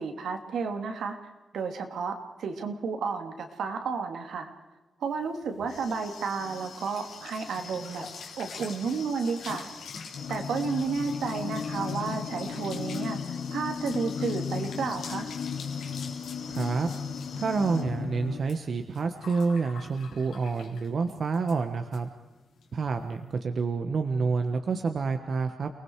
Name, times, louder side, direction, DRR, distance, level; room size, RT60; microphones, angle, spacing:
voice 1, 0.0-4.5 5.0-8.1 8.4-9.7 10.3-15.3, right 5 dB, 75° right, 5 dB, 2.8 m, -32 dB
sound 1, 5.2-20.9 21.3-21.6 21.9-22.0 22.3-22.7, left 5 dB, 85° left, 3.9 m, -44 dB
sound 2, 10.1-18.4, left 6 dB, 65° left, 1.1 m, -35 dB
voice 2, 16.5-16.9 17.3-22.1 22.7-25.7, right 4 dB, 45° right, 6 dB, 1.3 m, -28 dB
29.5 x 20.0 x 4.8 m, 1.1 s
wide cardioid pair, 155°, 0 cm